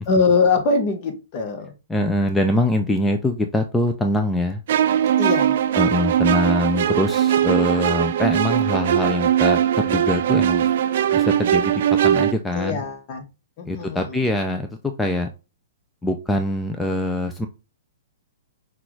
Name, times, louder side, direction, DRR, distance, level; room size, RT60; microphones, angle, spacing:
voice 1, 0.1-1.7 5.2-5.6 6.8-7.1 12.5-13.2 13.6-14.3, left 4 dB, 40° left, 1.1 m, -22 dB
voice 2, 1.9-4.6 5.8-10.7 11.1-12.8 13.7-14.7 15.0-15.3 16.0-17.5, left 1 dB, 5° left, 0.4 m, -23 dB
sound 1, 4.7-12.3, right 10 dB, 60° right, 0.3 m, -20 dB
5.8 x 2.4 x 3.2 m
hypercardioid pair, 120°, 0 cm